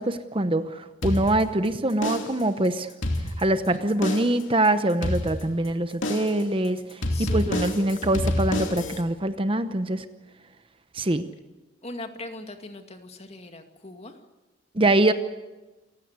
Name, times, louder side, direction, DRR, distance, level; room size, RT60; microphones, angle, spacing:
voice 1, 0.0-2.9 3.4-10.0 10.9-11.3 14.7-15.1, right 1 dB, 30° right, 10 dB, 0.9 m, -24 dB
sound 1, 1.0-1.7 2.0-2.5 2.9-3.7 4.0-4.5 5.0-5.7 6.0-6.5 7.0-9.0, left 1 dB, 85° left, 2.9 m, -28 dB
voice 2, 7.1-7.6 11.8-14.1, left 2 dB, 35° left, 6 dB, 2.2 m, -40 dB
28.0 x 16.0 x 8.2 m, 1.1 s
head